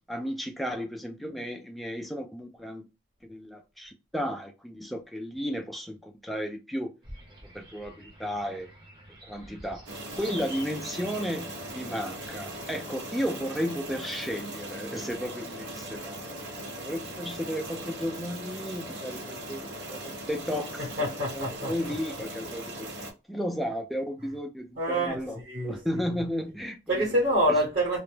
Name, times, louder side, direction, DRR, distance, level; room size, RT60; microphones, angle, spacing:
voice 1, 0.0-2.9 3.3-6.9 7.5-8.7 9.2-9.9 10.1-16.4 16.8-20.8 21.3-25.4 25.6-27.0, equal, ahead, 0.3 m, -34 dB
sound 1, 7.0-12.7, right 1 dB, 25° right, 0.7 m, -48 dB
sound 2, 9.9-23.1, right 1 dB, 85° right, 0.7 m, -39 dB
voice 2, 20.8-22.2 24.8-26.2 26.9-28.0, right 1 dB, 55° right, 1.0 m, -27 dB
2.1 x 2.0 x 3.1 m
head